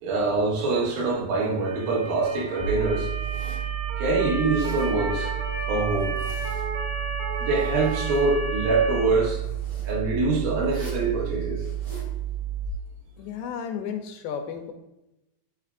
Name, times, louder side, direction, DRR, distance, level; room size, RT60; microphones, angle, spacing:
voice 1, 0.0-3.1 4.0-5.3 5.7-6.2 7.4-9.4 9.8-11.6, right 3 dB, 80° right, -1 dB, 3.3 m, -24 dB
Motor vehicle (road) / Siren, 1.5-9.0, right 2 dB, 55° right, 4.3 m, -34 dB
sound 1, 2.6-12.7, right 12 dB, 55° left, 2.4 m, -31 dB
Zipper (clothing), 3.2-3.7 4.4-4.9 5.9-6.8 7.3-8.3 9.4-9.9 10.6-11.1 11.6-12.1, right 1 dB, 35° right, 3.3 m, -46 dB
voice 2, 13.2-14.7, left 7 dB, 80° left, 5 dB, 2.4 m, -33 dB
12.5 x 5.9 x 2.5 m, 0.94 s
omnidirectional pair, 4.1 m